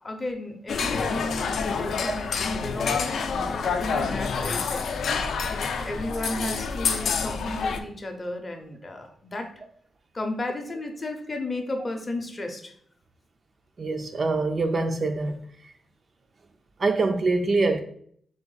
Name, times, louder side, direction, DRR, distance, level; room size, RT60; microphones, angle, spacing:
voice 1, 0.0-3.1 3.5-5.1 5.8-9.5 10.1-12.7, left 2 dB, 25° left, 0.6 m, -34 dB
sound 1, 0.7-7.8, left 5 dB, 70° left, 0.4 m, -27 dB
voice 2, 13.8-15.4 16.8-17.8, right 3 dB, 35° right, 0.3 m, -24 dB
3.5 x 3.4 x 3.8 m
wide cardioid pair, 165°, 0 cm